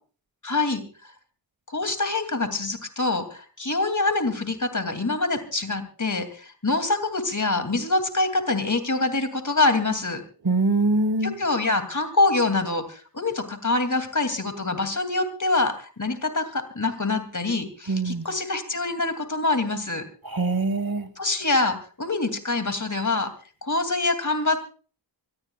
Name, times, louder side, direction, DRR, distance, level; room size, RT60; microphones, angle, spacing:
voice 1, 0.4-0.8 1.7-10.2 11.2-20.0 21.2-23.3 23.6-24.6, left 2 dB, 40° left, 7 dB, 2.7 m, -25 dB
voice 2, 10.4-11.3 17.9-18.3 20.2-21.1, right 2 dB, 55° right, 12 dB, 1.5 m, -23 dB
24.5 x 18.5 x 2.4 m, 0.38 s
wide cardioid pair, 75°, 43 cm